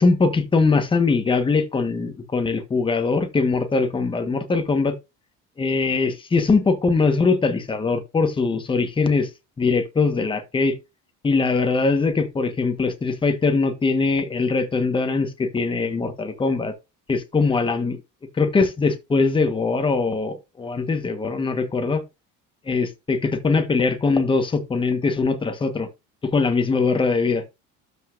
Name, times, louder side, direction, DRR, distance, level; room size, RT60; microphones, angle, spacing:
voice 1, 0.0-5.0 5.6-9.3 9.6-10.8 11.2-16.7 17.1-18.0 18.4-22.0 22.7-25.9 26.2-27.4, left 4 dB, 15° left, 1.4 m, -21 dB
12.5 x 5.5 x 2.6 m
cardioid pair, 165°, 33 cm